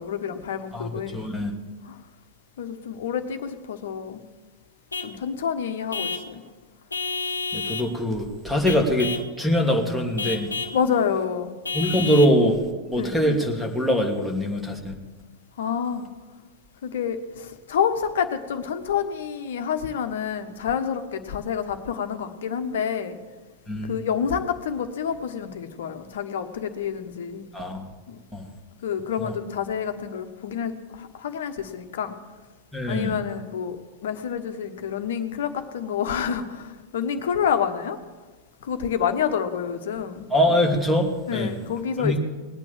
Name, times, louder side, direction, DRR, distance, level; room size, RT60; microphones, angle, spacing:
voice 1, 0.0-1.3 1.8-2.0 2.6-4.2 5.0-6.4 10.7-11.5 13.0-13.1 15.6-16.1 16.8-23.2 23.8-27.5 28.1-28.2 28.8-32.1 32.9-33.8 34.0-38.0 38.6-40.3 41.3-42.2, left 7 dB, 60° left, 9 dB, 1.4 m, -28 dB
voice 2, 0.7-1.5 7.5-10.5 11.7-12.6 12.9-15.0 23.7-24.0 27.5-27.9 28.3-28.4 29.2-29.4 32.7-33.1 40.3-41.6 42.0-42.2, equal, ahead, 2 dB, 2.7 m, -23 dB
Vehicle horn car horn honking / Truck, 4.9-5.2 5.9-6.3 6.9-7.9 8.7-9.3 10.2-10.8 11.7-12.4, left 4 dB, 85° left, 1.1 m, -30 dB
20.0 x 9.0 x 7.8 m, 1.3 s
figure-of-eight pair, 95°, 0 cm